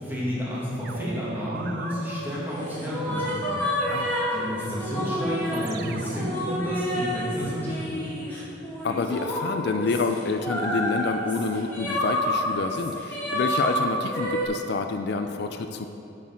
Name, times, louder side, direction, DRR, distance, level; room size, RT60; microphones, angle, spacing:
voice 1, 0.0-3.7 4.0-8.1, equal, 10° right, -7 dB, 2.2 m, -31 dB
sound 1, 0.8-1.9 3.0-7.5, right 4 dB, 55° right, 0.5 m, -41 dB
sound 2, 1.8-14.4, left 1 dB, 10° left, 1.8 m, -29 dB
voice 2, 3.9-4.2 8.3-8.5 8.8-15.9, left 4 dB, 60° left, 6 dB, 0.4 m, -28 dB
8.4 x 6.1 x 5.8 m, 2.8 s
head